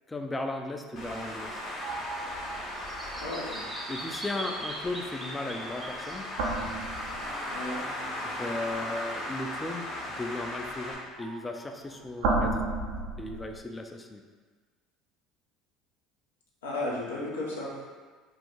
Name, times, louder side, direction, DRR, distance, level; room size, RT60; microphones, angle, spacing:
voice 1, 0.1-1.6 3.9-6.3 8.2-9.9 10.2-12.6 13.2-14.2, left 2 dB, 20° left, 4 dB, 0.3 m, -36 dB
sound 1, 0.9-4.4 6.2-7.8 11.2-13.6, right 2 dB, 70° right, 0.5 m, -34 dB
Traffic noise roadway noise, 1.0-11.0, left 1 dB, 50° left, 1.0 m, -37 dB
Bird vocalization bird call bird song, 1.8-7.7, right 1 dB, 10° right, 0.7 m, -42 dB
voice 2, 3.1-3.6 7.5-7.8 16.6-17.8, left 2 dB, 80° left, -4 dB, 0.6 m, -34 dB
2.8 x 2.2 x 3.6 m, 1.4 s
figure-of-eight pair, 65°, 0 cm